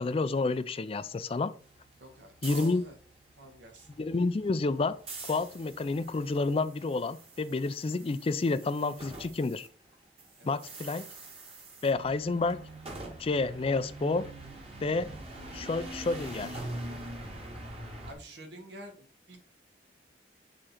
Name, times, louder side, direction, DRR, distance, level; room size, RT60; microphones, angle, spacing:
voice 1, 0.0-1.5 2.4-2.8 4.0-5.0 5.3-9.7 10.4-11.1 11.8-12.6 13.2-14.3 14.8-15.1 15.5-16.6, left 3 dB, 35° left, 13 dB, 0.4 m, -29 dB
sound 1, 1.6-9.7 9.9-18.1, right 2 dB, 35° right, 1.6 m, -44 dB
voice 2, 2.0-3.0 3.4-3.9 10.4-10.5 18.1-19.4, right 1 dB, 80° right, 3 dB, 1.7 m, -48 dB
6.6 x 3.7 x 4.3 m, 0.41 s
head